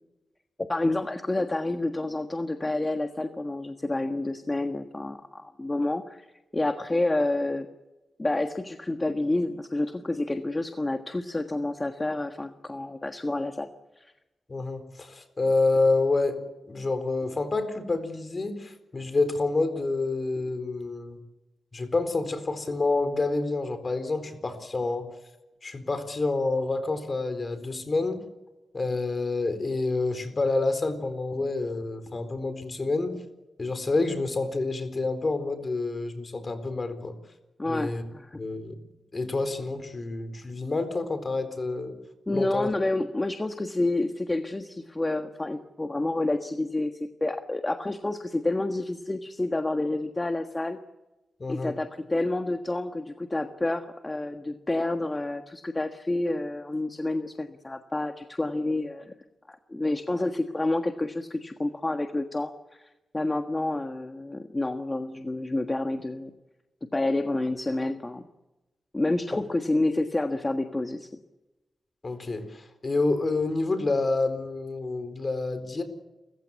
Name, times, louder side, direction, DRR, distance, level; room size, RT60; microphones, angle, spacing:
voice 1, 0.7-6.3 6.5-7.7 8.2-13.7 14.0-14.1 37.6-38.4 42.3-50.8 51.5-59.1 59.5-66.3 66.9-68.2 68.9-71.1, left 2 dB, 25° left, 6 dB, 1.5 m, -29 dB
voice 2, 14.5-16.4 16.6-21.2 21.7-25.1 25.6-28.2 28.7-33.2 33.6-37.1 37.7-38.0 38.3-38.8 39.1-41.9 42.3-42.7 51.4-51.7 69.3-69.4 72.0-75.8, left 3 dB, 45° left, 10 dB, 4.2 m, -28 dB
29.5 x 15.5 x 8.4 m, 1.1 s
cardioid pair, 65°, 0 cm